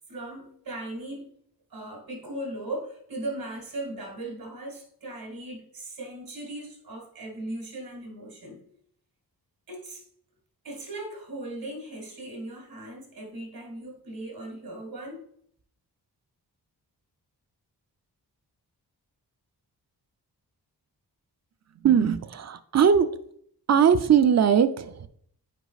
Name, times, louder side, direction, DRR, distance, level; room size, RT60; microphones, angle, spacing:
voice 1, 0.1-1.3 1.7-8.6 9.7-10.0 10.6-15.2, right 1 dB, 60° right, 2.2 m, -38 dB
voice 2, 21.8-23.1 23.7-25.1, right 7 dB, 45° right, 0.5 m, -20 dB
8.1 x 4.9 x 2.4 m
wide cardioid pair, 85°, 40 cm